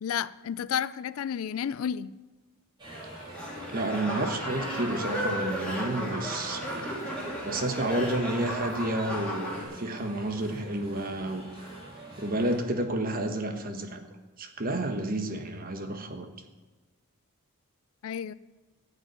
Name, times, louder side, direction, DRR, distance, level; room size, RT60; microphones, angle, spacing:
voice 1, 0.0-2.1 18.0-18.3, left 8 dB, 65° left, 0.4 m, -31 dB
sound 1, 2.8-12.6, right 1 dB, 20° right, 5.4 m, -45 dB
sound 2, 3.3-9.6, equal, 5° left, 3.2 m, -34 dB
voice 2, 3.7-6.9 7.4-11.5 12.2-14.0 14.4-16.3, right 1 dB, 40° right, 1.2 m, -30 dB
14.0 x 5.4 x 9.5 m
head